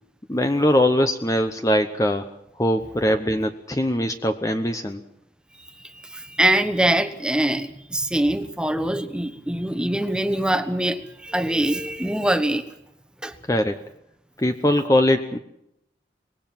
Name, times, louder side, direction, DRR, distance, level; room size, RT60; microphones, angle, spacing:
voice 1, 0.3-2.3 2.6-5.0 13.5-13.8 14.4-15.4, left 1 dB, 20° left, 7 dB, 0.9 m, -21 dB
voice 2, 5.6-12.7 13.2-13.3, right 1 dB, 5° right, 9 dB, 1.2 m, -23 dB
24.5 x 20.5 x 6.0 m, 0.80 s
head